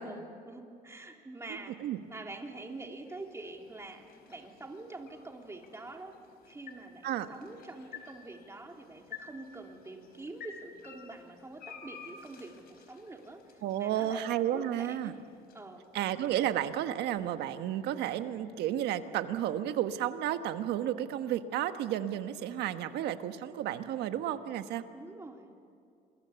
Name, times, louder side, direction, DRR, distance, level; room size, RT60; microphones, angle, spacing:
voice 1, 0.0-1.8 2.1-6.2 6.4-14.2 14.5-15.2 15.5-15.9 24.9-25.5, right 2 dB, 15° right, 2 dB, 3.2 m, -46 dB
sound 1, 1.6-17.8, left 6 dB, 65° left, 4.6 m, -54 dB
voice 2, 13.6-15.1 15.9-24.8, right 11 dB, 80° right, 9 dB, 1.4 m, -32 dB
28.0 x 22.5 x 7.1 m, 2.5 s
cardioid pair, 110°, 17 cm